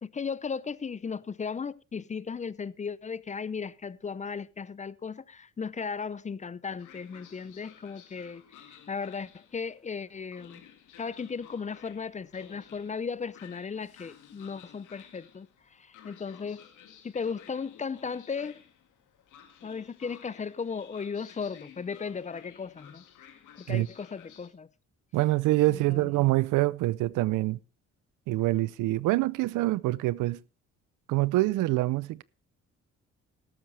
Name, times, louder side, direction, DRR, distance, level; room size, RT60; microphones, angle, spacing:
voice 1, 0.0-8.4 8.9-10.6 11.0-16.6 17.0-18.5 19.6-23.0 23.6-24.7 25.7-26.1, left 5 dB, 25° left, 0.5 m, -36 dB
Train, 6.8-24.5, left 9 dB, 80° left, 2.0 m, -54 dB
voice 2, 25.1-27.6 28.3-30.4 31.1-32.2, right 18 dB, 90° right, 0.6 m, -25 dB
14.0 x 12.5 x 3.3 m
cardioid pair, 90°, 30 cm